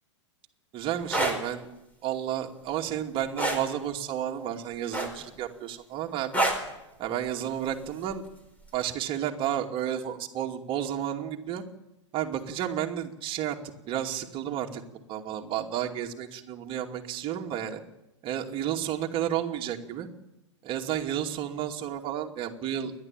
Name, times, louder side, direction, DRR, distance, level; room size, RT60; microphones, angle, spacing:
voice 1, 0.7-1.7 2.0-6.4 7.0-8.2 8.7-11.6 12.1-13.6 13.9-14.8 15.1-17.8 18.2-20.1 20.6-22.9, right 10 dB, 35° right, 2 dB, 2.5 m, -31 dB
sound 1, 1.0-1.4 3.4-3.7 4.9-5.4 6.3-6.7 8.1-8.3, right 1 dB, 10° left, 4.6 m, -26 dB
29.5 x 11.5 x 9.1 m, 0.95 s
figure-of-eight pair, 100°, 15 cm